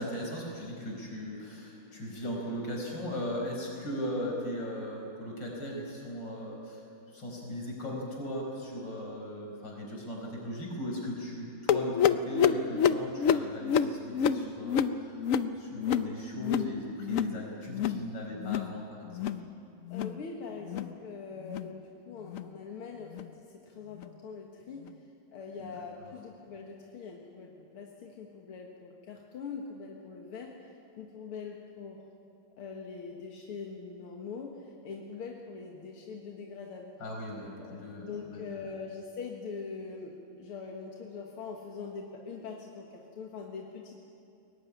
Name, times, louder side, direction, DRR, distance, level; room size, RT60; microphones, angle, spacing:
voice 1, 0.0-15.3 15.6-19.3 25.6-26.1 37.0-38.6, equal, 55° left, 0 dB, 5.7 m, -38 dB
sound 1, 11.7-16.7 17.0-17.4 17.7-18.0 18.4-18.7 19.1-19.4 19.8-20.2 20.6-20.9 21.4-21.7 22.3-22.5 23.1-23.3 24.0-24.1 24.8-24.9, left 8 dB, 70° left, 0.7 m, -28 dB
voice 2, 19.9-23.3 23.5-24.9 25.3-32.0 32.6-36.9 37.6-43.9, left 5 dB, 90° left, 0 dB, 2.5 m, -43 dB
22.0 x 18.0 x 9.8 m, 2.7 s
omnidirectional pair, 2.3 m